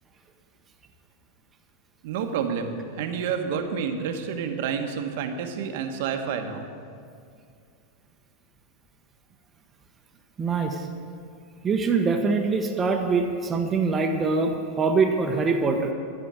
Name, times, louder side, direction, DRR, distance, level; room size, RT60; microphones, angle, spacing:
voice 1, 2.0-6.6, right 6 dB, 65° right, 5 dB, 1.2 m, -29 dB
voice 2, 10.4-10.9 11.6-15.9, right 4 dB, 25° right, 4 dB, 1.0 m, -24 dB
13.0 x 5.0 x 8.8 m, 2.4 s
hypercardioid pair, 115°, 0 cm